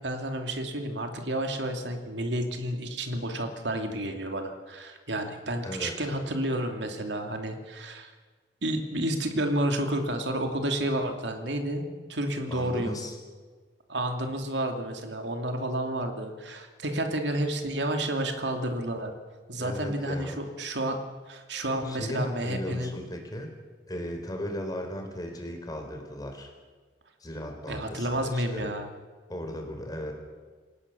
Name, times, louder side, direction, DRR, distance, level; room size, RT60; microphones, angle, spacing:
voice 1, 0.0-8.1 8.6-13.0 13.9-19.1 19.5-23.0 27.7-28.9, right 1 dB, 80° right, 4 dB, 2.7 m, -30 dB
voice 2, 12.5-13.1 19.6-20.4 21.8-23.5 23.9-26.5 27.2-28.7 29.3-30.1, equal, 20° left, 4 dB, 4.0 m, -36 dB
28.5 x 17.0 x 7.0 m, 1.4 s
head